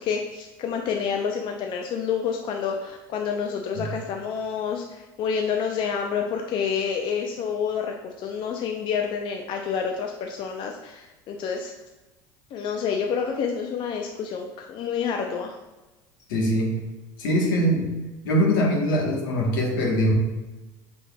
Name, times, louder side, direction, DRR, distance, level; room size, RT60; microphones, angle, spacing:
voice 1, 0.0-11.7 12.5-15.6, left 6 dB, 50° left, 3 dB, 0.5 m, -28 dB
voice 2, 16.3-16.8 17.2-18.0 18.2-20.1, equal, 80° left, -1 dB, 1.1 m, -22 dB
5.1 x 3.4 x 2.3 m, 1.1 s
hypercardioid pair, 80°, 11 cm